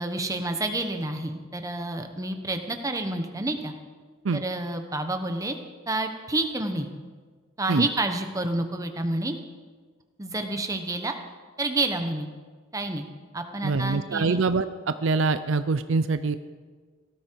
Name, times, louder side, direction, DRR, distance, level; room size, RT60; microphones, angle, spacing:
voice 1, 0.0-3.7 4.3-5.6 5.9-6.9 7.6-9.4 10.2-11.1 11.6-12.3 12.7-13.0 13.3-14.4, right 2 dB, 15° right, 6 dB, 1.1 m, -29 dB
voice 2, 13.6-14.7 15.0-16.4, right 4 dB, 65° right, 11 dB, 0.5 m, -24 dB
18.0 x 13.5 x 4.7 m, 1.5 s
head